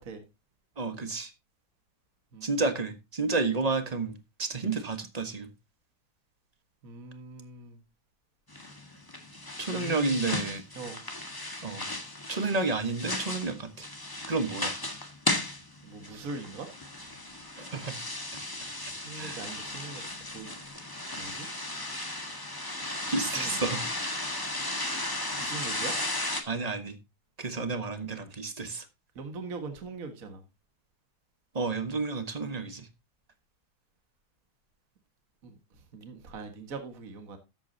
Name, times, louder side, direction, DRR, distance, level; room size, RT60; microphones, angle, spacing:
voice 1, 0.8-1.3 2.4-4.1 4.4-5.5 9.6-10.6 11.6-11.9 12.3-13.9 14.3-14.7 17.6-17.9 19.1-19.4 23.1-23.8 26.5-26.9 27.4-28.8 31.5-32.9, right 3 dB, 25° right, 1.0 m, -30 dB
voice 2, 6.8-7.8 9.7-10.2 10.8-11.0 15.8-16.7 19.0-20.0 20.3-20.5 21.2-21.5 23.2-23.6 25.4-25.9 29.2-30.4 35.4-35.5 35.9-37.4, right 4 dB, 45° right, 1.9 m, -41 dB
sound 1, 8.5-26.4, left 1 dB, 10° left, 1.3 m, -35 dB
13.5 x 8.4 x 2.7 m
omnidirectional pair, 2.2 m